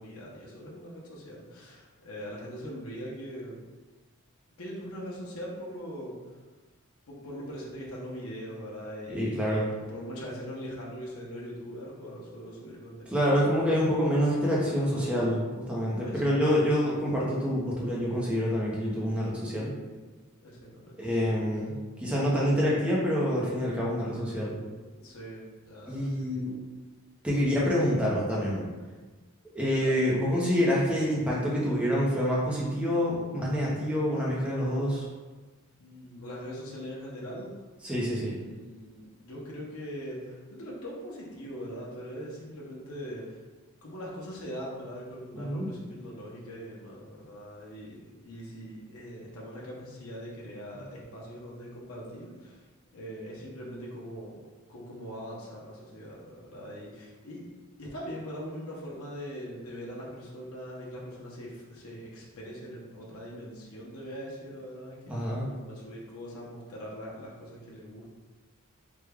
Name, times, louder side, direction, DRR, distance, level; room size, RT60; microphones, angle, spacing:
voice 1, 0.0-3.6 4.6-6.4 7.1-13.1 16.0-16.6 20.4-21.3 24.9-26.6 29.8-30.0 35.8-37.7 38.4-43.4 43.8-52.7 52.9-54.4 54.7-57.5 57.8-68.1, equal, 70° left, -4 dB, 0.7 m, -41 dB
voice 2, 9.1-9.6 13.1-19.7 21.0-21.7 22.0-24.6 25.9-26.5 27.2-28.6 29.5-35.1 37.8-38.3 45.3-45.7 65.1-65.4, equal, 5° right, -6 dB, 0.6 m, -27 dB
3.4 x 2.2 x 3.3 m, 1.3 s
head